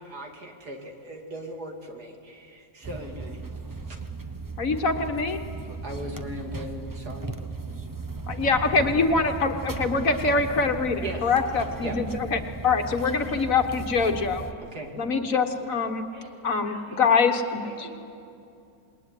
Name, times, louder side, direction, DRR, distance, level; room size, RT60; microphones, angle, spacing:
voice 1, 0.0-3.4 3.7-4.0 5.8-7.4 11.0-11.3 11.8-12.0 14.6-15.0, right 1 dB, 70° right, 3 dB, 3.2 m, -38 dB
sound 1, 2.8-14.5, right 3 dB, 15° right, 0.8 m, -36 dB
voice 2, 4.6-5.4 8.3-14.4 15.0-16.0 16.4-17.6, left 4 dB, 55° left, 6 dB, 1.8 m, -24 dB
voice 3, 16.1-18.0, equal, 90° right, -2 dB, 5.7 m, -46 dB
27.5 x 21.0 x 9.9 m, 2.6 s
omnidirectional pair, 1.8 m